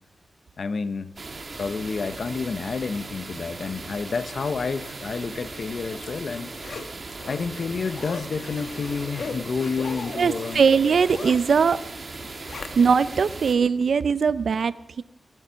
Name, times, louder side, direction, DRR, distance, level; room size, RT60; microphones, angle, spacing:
voice 1, 0.6-1.1 1.6-6.5 7.3-10.6, left 5 dB, 65° left, 12 dB, 0.9 m, -29 dB
sound 1, 1.2-13.5, right 3 dB, 45° right, 1.8 m, -38 dB
Zipper (clothing), 5.7-13.1 13.5-13.6, left 4 dB, 90° left, 1.3 m, -39 dB
voice 2, 10.2-11.8 12.8-15.0, right 6 dB, 75° right, 15 dB, 0.6 m, -20 dB
17.5 x 11.0 x 7.1 m, 0.93 s
wide cardioid pair, 110°, 0 cm